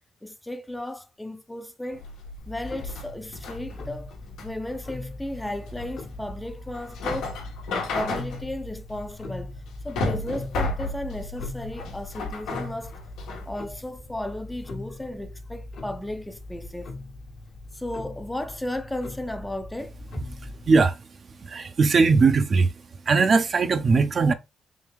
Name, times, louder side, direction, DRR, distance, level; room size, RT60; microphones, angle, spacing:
voice 1, 0.2-2.0 2.5-4.1 4.4-7.4 7.9-9.5 9.8-12.9 13.5-16.9 17.7-20.0, left 1 dB, 10° left, 0.5 m, -34 dB
sound 1, 1.9-13.5, left 2 dB, 90° left, 1.2 m, -33 dB
Clock, 2.4-20.8, left 2 dB, 55° left, 1.1 m, -41 dB
voice 2, 20.4-21.0 21.4-22.7 23.1-24.3, right 4 dB, 45° right, 0.6 m, -20 dB
3.7 x 3.4 x 3.1 m
cardioid pair, 90°, 0 cm